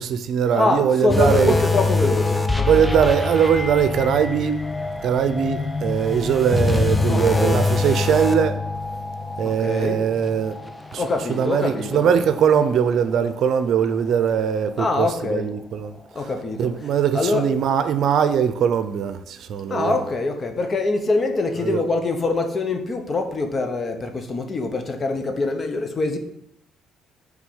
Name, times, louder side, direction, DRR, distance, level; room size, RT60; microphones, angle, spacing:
voice 1, 0.0-1.5 2.7-4.6 5.0-8.6 9.4-10.5 10.9-11.0 11.3-16.0 16.6-20.0 21.6-21.8, right 8 dB, 65° right, 0.6 m, -21 dB
voice 2, 0.5-2.9 7.1-7.7 9.4-10.0 11.0-12.4 14.8-15.5 16.1-17.5 19.7-26.2, left 3 dB, 40° left, 1.0 m, -24 dB
sound 1, 1.1-12.6 12.9-13.1 13.7-13.8, left 3 dB, 10° left, 0.7 m, -25 dB
6.1 x 3.8 x 5.5 m
supercardioid pair, 80°, 0 cm